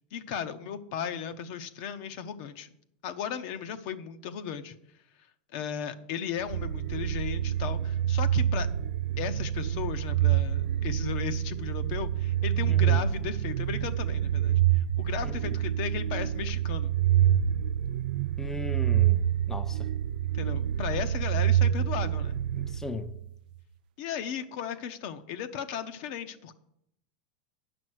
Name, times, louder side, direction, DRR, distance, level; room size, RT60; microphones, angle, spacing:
voice 1, 0.1-2.7 3.0-4.7 5.5-8.7 9.2-16.9 20.3-22.4 24.0-26.6, left 8 dB, 55° left, 9 dB, 0.8 m, -36 dB
sound 1, 6.4-23.3, right 11 dB, 75° right, 0.3 m, -27 dB
voice 2, 12.7-13.0 15.2-15.5 18.4-19.2 19.5-19.9 22.6-23.1, left 2 dB, 10° left, 8 dB, 0.6 m, -37 dB
8.8 x 6.0 x 7.8 m, 0.77 s
supercardioid pair, 135°, 5 cm